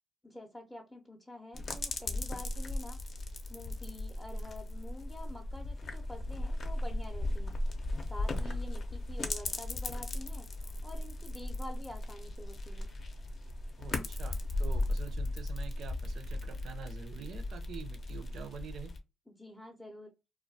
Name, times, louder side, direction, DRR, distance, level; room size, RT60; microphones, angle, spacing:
voice 1, 0.2-3.0 3.5-7.5 8.1-10.5 10.8-12.9 19.3-20.1, left 1 dB, 5° left, 0.5 m, -48 dB
sound 1, 1.5-19.0, left 2 dB, 50° left, 0.6 m, -37 dB
voice 2, 13.8-18.9, right 8 dB, 70° right, 0.5 m, -46 dB
2.2 x 2.1 x 2.6 m
cardioid pair, 80°, 0 cm